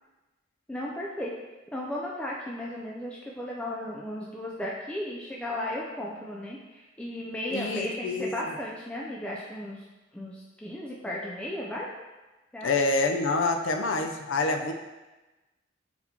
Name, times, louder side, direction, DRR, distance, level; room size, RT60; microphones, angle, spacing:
voice 1, 0.7-1.3 1.7-9.8 10.1-11.9 12.5-12.7, left 1 dB, 5° left, -4 dB, 0.3 m, -35 dB
voice 2, 7.5-8.3 12.6-14.7, left 3 dB, 90° left, 5 dB, 0.4 m, -27 dB
4.2 x 4.1 x 2.8 m, 1.1 s
head